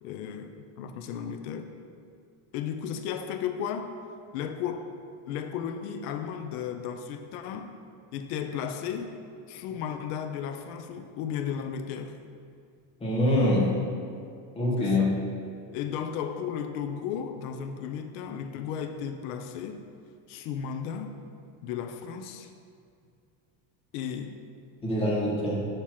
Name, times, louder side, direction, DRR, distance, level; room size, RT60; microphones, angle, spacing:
voice 1, 0.0-1.7 2.5-3.9 4.3-4.8 5.3-7.8 8.1-9.2 9.5-12.2 14.8-15.1 15.7-19.9 20.3-21.2 21.6-22.5 23.9-24.3, left 8 dB, 90° left, 6 dB, 0.6 m, -34 dB
voice 2, 13.0-13.7 14.6-15.1 24.8-25.7, left 1 dB, 15° left, -5 dB, 0.9 m, -24 dB
6.5 x 2.9 x 5.7 m, 2.3 s
cardioid pair, 170°, 44 cm